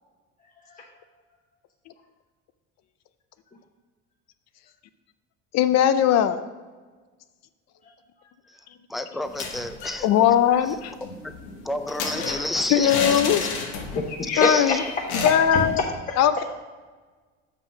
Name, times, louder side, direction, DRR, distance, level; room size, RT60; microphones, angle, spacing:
voice 1, 5.5-6.4 10.0-10.9 12.7-13.4 14.4-14.8 15.2-15.8 16.2-16.4, left 10 dB, 60° left, 11 dB, 0.5 m, -19 dB
voice 2, 8.9-10.1 10.7-10.8 11.2-11.3 11.6-13.2 14.3-14.8, left 1 dB, ahead, 9 dB, 0.4 m, -30 dB
sound 1, 9.2-10.0 10.3-10.4 10.7-14.2 14.4-14.6 15.1-15.8, left 4 dB, 85° left, 1.1 m, -30 dB
voice 3, 13.9-15.3 15.8-16.2, left 3 dB, 25° left, 1 dB, 0.8 m, -26 dB
5.5 x 5.2 x 6.2 m, 1.4 s
supercardioid pair, 100°, 31 cm